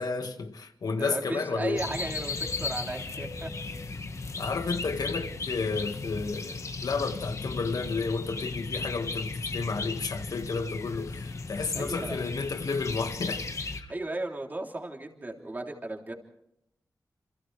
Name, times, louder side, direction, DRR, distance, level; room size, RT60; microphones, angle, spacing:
voice 1, 0.0-1.9 4.4-13.5 13.8-13.9, left 4 dB, 75° left, 1.8 m, -32 dB
voice 2, 1.0-3.5 11.7-12.2 13.9-16.1, right 2 dB, 25° right, 3.3 m, -35 dB
sound 1, 1.8-13.8, left 3 dB, 50° left, 1.5 m, -36 dB
28.5 x 27.5 x 3.4 m
wide cardioid pair, 125°, 7 cm